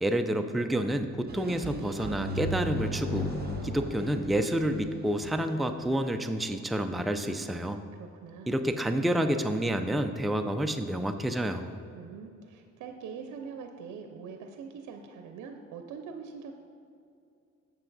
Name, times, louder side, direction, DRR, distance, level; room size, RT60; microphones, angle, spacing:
voice 1, 0.0-3.3 3.6-7.8 8.5-11.8, right 1 dB, ahead, 6 dB, 0.4 m, -29 dB
sound 1, 1.3-6.0, right 4 dB, 30° right, 0.7 m, -43 dB
sound 2, 2.1-5.6, left 1 dB, 55° left, 1.3 m, -36 dB
voice 2, 7.9-8.5 11.9-16.5, right 6 dB, 85° right, 5 dB, 0.6 m, -43 dB
8.1 x 7.1 x 4.0 m, 2.5 s
cardioid pair, 90°, 30 cm